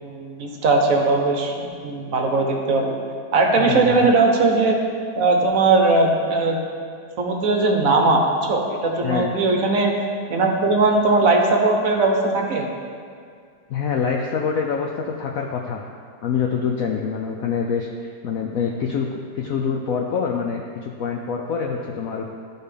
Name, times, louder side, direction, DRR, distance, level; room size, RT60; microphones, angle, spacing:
voice 1, 0.0-3.0 3.3-4.8 5.1-6.6 7.2-10.0 10.3-12.7, right 3 dB, 55° right, 2 dB, 1.1 m, -19 dB
voice 2, 3.6-4.0 9.0-9.3 13.7-15.8 16.2-22.3, left 6 dB, 70° left, 1 dB, 0.8 m, -25 dB
12.5 x 4.4 x 3.4 m, 2.2 s
omnidirectional pair, 1.9 m